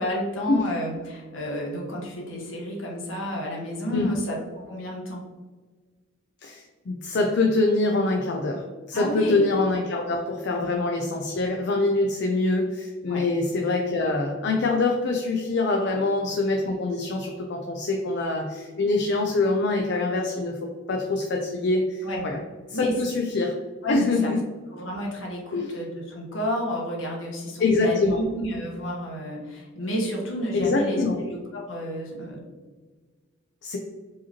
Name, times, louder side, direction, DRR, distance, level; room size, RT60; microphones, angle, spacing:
voice 1, 0.0-4.4 4.7-5.2 8.9-9.4 10.6-10.7 13.1-13.2 15.8-16.0 22.0-22.2 22.7-22.9 23.8-24.4 24.7-31.0 31.3-32.4, equal, 70° left, -2 dB, 1.1 m, -31 dB
voice 2, 6.4-22.4 22.7-23.5 23.9-24.4 25.5-25.8 27.6-28.2 30.5-31.2 33.6-33.8, left 3 dB, 55° left, 1 dB, 0.4 m, -24 dB
4.7 x 3.0 x 2.9 m, 1.4 s
head